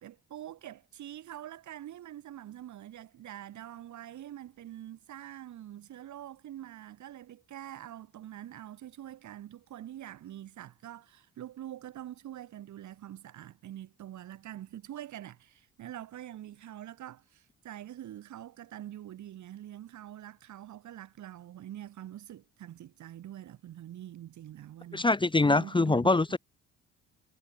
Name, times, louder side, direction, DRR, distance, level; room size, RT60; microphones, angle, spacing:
voice 1, 0.0-25.1 25.4-26.1, right 12 dB, 70° right, 2.5 m, -45 dB
voice 2, 24.9-26.4, left 3 dB, 15° left, 0.9 m, -24 dB
cardioid pair, 90°, 30 cm